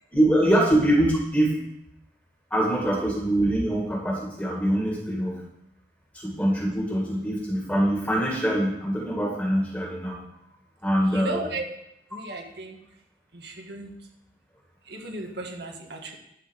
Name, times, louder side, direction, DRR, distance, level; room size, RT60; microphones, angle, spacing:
voice 1, 0.1-1.5 2.5-5.4 6.1-10.2 10.8-11.4, right 1 dB, 10° left, -2 dB, 2.1 m, -23 dB
voice 2, 11.0-11.6 12.1-12.8 13.3-13.9 14.8-16.2, right 2 dB, 70° right, 1 dB, 1.6 m, -35 dB
11.0 x 4.7 x 6.4 m, 0.79 s
head